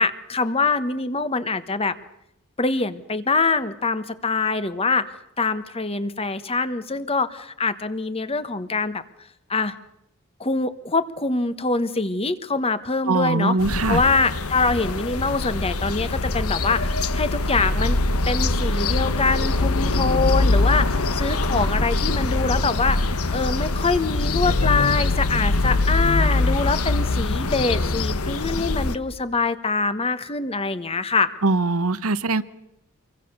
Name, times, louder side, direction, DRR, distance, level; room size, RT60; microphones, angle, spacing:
voice 1, 0.0-1.9 2.6-5.1 5.4-9.0 9.5-9.7 10.4-13.6 13.9-18.0 18.3-23.0 23.3-31.3, left 3 dB, 25° left, 12 dB, 1.2 m, -24 dB
voice 2, 13.1-14.0 31.4-32.4, right 3 dB, 80° right, 14 dB, 1.0 m, -21 dB
sound 1, 13.6-29.0, left 2 dB, 80° left, 1.2 m, -23 dB
26.5 x 23.0 x 6.8 m, 0.79 s
head